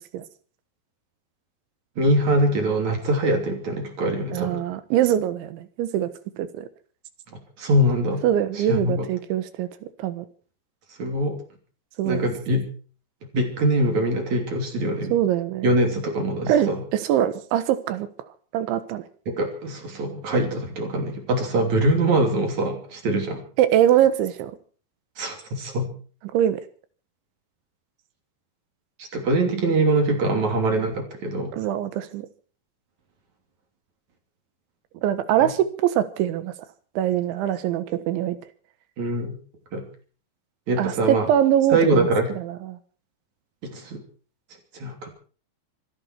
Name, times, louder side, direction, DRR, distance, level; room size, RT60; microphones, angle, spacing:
voice 1, 2.0-4.6 7.6-8.2 8.6-9.1 11.0-11.4 12.0-12.7 13.3-15.1 15.6-16.8 19.3-23.4 25.2-25.9 29.1-31.6 35.4-35.5 39.0-39.4 39.7-39.8 40.7-41.3 41.7-42.3 43.6-44.0 44.7-45.1, right 1 dB, 45° right, 4 dB, 3.8 m, -23 dB
voice 2, 4.3-6.7 8.2-9.7 10.0-10.3 12.0-12.3 15.1-15.7 16.5-18.1 18.5-19.0 23.6-24.5 26.3-26.6 31.5-32.3 35.0-36.5 37.0-38.4 40.8-42.1 42.4-42.8, right 11 dB, 85° right, 12 dB, 3.7 m, -23 dB
26.0 x 11.5 x 4.5 m, 0.42 s
omnidirectional pair, 5.2 m